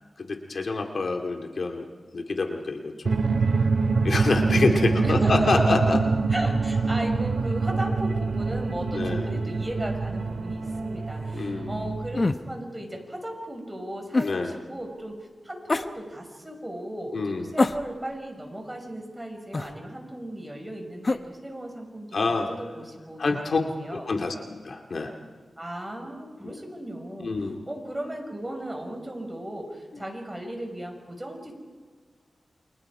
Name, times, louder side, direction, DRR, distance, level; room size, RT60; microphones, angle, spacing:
voice 1, 0.2-1.8 2.1-3.2 4.0-6.0 8.9-9.3 11.3-11.9 14.2-14.5 17.1-17.5 22.1-22.5 23.2-23.6 23.9-25.2 26.4-26.6 27.2-27.6 29.9-30.0, left 3 dB, 65° left, 3 dB, 2.2 m, -27 dB
sound 1, 3.1-12.2, right 4 dB, 75° right, 2.1 m, -25 dB
voice 2, 4.5-5.6 6.3-23.3 23.8-24.0 25.6-31.5, right 1 dB, 15° right, 3 dB, 5.8 m, -36 dB
sound 2, 12.1-12.5 14.1-14.4 15.7-15.9 17.6-18.2 19.5-19.8 21.0-21.3, left 3 dB, 40° left, 1.1 m, -25 dB
29.5 x 25.5 x 4.9 m, 1.5 s
wide cardioid pair, 80°, 0 cm